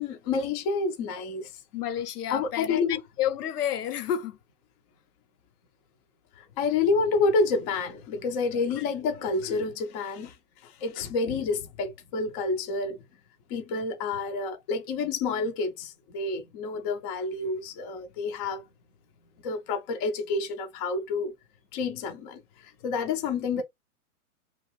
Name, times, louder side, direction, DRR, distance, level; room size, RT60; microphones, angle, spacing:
voice 1, 0.0-1.5 2.3-3.0 6.6-10.3 10.6-13.0 13.5-18.6 19.4-21.3 21.7-22.4 22.8-23.6, left 4 dB, 25° left, 0.4 m, -28 dB
voice 2, 1.7-4.4 8.8-8.9 11.3-11.4, left 10 dB, 90° left, 0.6 m, -30 dB
2.8 x 2.4 x 3.1 m
hypercardioid pair, 125°, 45 cm